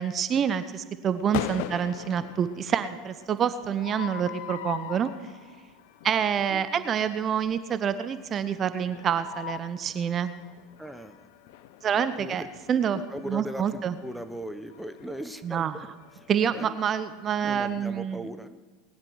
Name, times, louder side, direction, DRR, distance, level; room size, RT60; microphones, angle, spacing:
voice 1, 0.0-5.1 6.0-10.3 11.8-12.4 12.7-14.0 15.4-15.8 16.3-18.2, right 8 dB, 35° right, 11 dB, 0.8 m, -27 dB
sound 1, 1.1-17.9, left 11 dB, 65° left, 0.6 m, -42 dB
voice 2, 10.8-11.3 11.9-12.5 13.1-15.9 16.2-16.7 17.4-18.6, right 1 dB, 5° right, 9 dB, 0.9 m, -39 dB
20.0 x 9.7 x 4.7 m, 1.4 s
hypercardioid pair, 85°, 0 cm